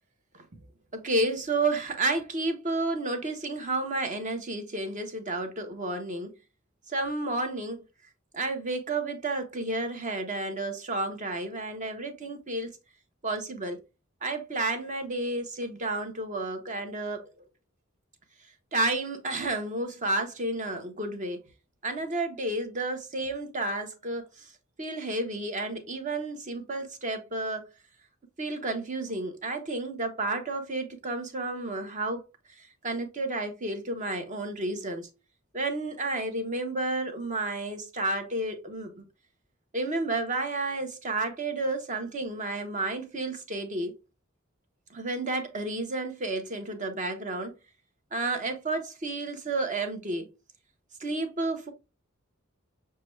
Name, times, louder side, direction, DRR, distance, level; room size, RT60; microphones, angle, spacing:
voice 1, 0.9-6.3 6.9-7.8 8.3-12.7 13.2-13.8 14.2-17.3 18.7-21.4 21.8-24.2 24.8-27.7 28.4-32.2 32.8-35.1 35.5-39.0 39.7-43.9 44.9-47.5 48.1-50.3 51.0-51.7, right 2 dB, 40° right, 0.9 m, -31 dB
6.6 x 2.3 x 3.1 m
head